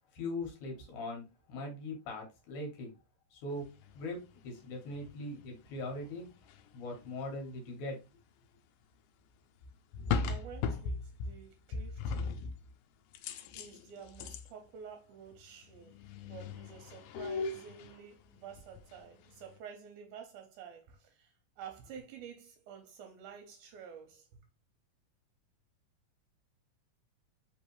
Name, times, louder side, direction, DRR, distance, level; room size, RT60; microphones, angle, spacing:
voice 1, 0.1-2.9 3.3-3.6 3.9-4.2 4.4-6.2 6.7-8.0, left 2 dB, 70° left, 2.7 m, -40 dB
sound 1, 3.8-4.0 4.9-5.1 5.4-7.2 9.6-11.4 11.7-12.7 13.1-14.5 15.4-15.5 15.7-18.0 18.3-19.1 19.4-19.6, left 5 dB, 85° left, 2.2 m, -38 dB
voice 2, 10.2-12.4 13.5-24.3, right 7 dB, 75° right, 2.1 m, -50 dB
5.1 x 3.2 x 3.0 m
omnidirectional pair, 3.8 m